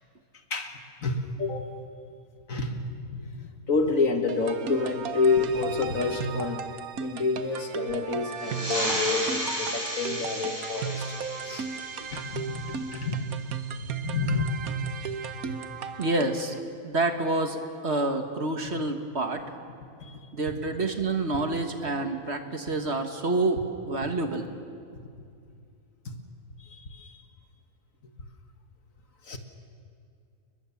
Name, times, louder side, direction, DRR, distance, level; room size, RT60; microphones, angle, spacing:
voice 1, 0.5-1.7 2.5-6.6 7.0-11.1 11.4-11.7 12.1-13.4 13.7-14.6 15.4-15.6 20.0-20.3 26.1-26.2 26.6-27.2 29.2-29.4, left 4 dB, 60° left, 5 dB, 2.1 m, -29 dB
sound 1, 4.3-16.6, right 6 dB, 70° right, 1.4 m, -35 dB
sound 2, 8.3-13.5, equal, 25° left, 7.7 m, -34 dB
voice 2, 16.0-16.5 16.8-17.6 17.8-19.4 20.3-23.6 23.9-24.5, right 2 dB, 45° right, 6 dB, 1.7 m, -27 dB
29.5 x 21.5 x 7.2 m, 2.4 s
omnidirectional pair, 1.6 m